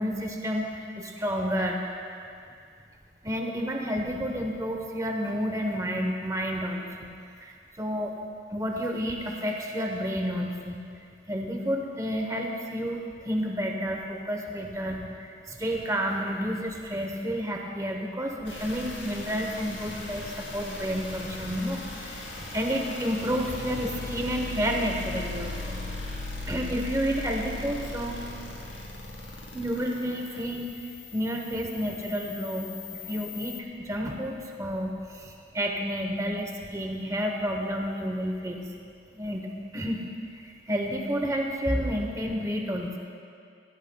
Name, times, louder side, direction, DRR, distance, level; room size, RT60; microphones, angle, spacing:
voice 1, 0.0-1.8 3.2-7.1 7.4-8.1 8.5-10.8 11.3-25.8 26.5-28.2 29.5-38.6 39.2-40.0 40.3-43.0, equal, 15° right, 1 dB, 0.9 m, -30 dB
sound 1, 18.4-33.6, left 2 dB, 80° left, 2.4 m, -39 dB
17.5 x 16.0 x 2.3 m, 2.4 s
head